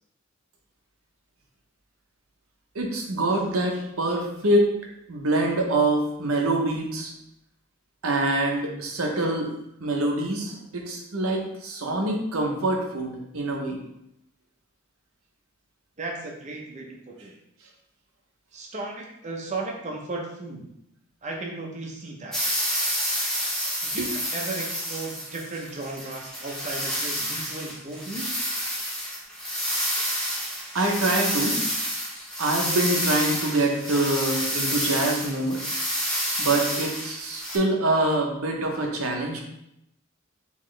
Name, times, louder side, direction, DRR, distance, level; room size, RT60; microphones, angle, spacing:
voice 1, 2.7-4.7 5.1-7.1 8.0-13.8 24.0-24.1 30.7-31.6 32.4-35.6 36.4-39.4, right 2 dB, 85° right, 1 dB, 0.8 m, -25 dB
voice 2, 16.0-17.3 18.5-20.6 21.2-22.4 23.8-28.5, right 2 dB, 35° right, 0 dB, 0.7 m, -35 dB
sound 1, 22.3-37.6, equal, 5° left, 0.8 m, -29 dB
3.9 x 3.0 x 3.2 m, 0.81 s
head